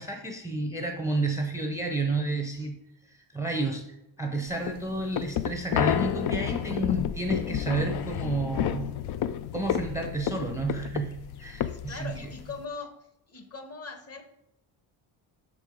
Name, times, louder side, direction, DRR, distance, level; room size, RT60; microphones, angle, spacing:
voice 1, 0.0-2.8 3.1-3.9 4.2-8.9 9.5-12.2, right 3 dB, 5° right, 2 dB, 0.6 m, -31 dB
sound 1, 4.5-12.7, left 10 dB, 55° left, 0.5 m, -30 dB
voice 2, 11.7-13.0 13.3-14.3, left 4 dB, 30° left, 7 dB, 0.9 m, -40 dB
6.0 x 4.8 x 5.0 m, 0.86 s
cardioid pair, 140°, 46 cm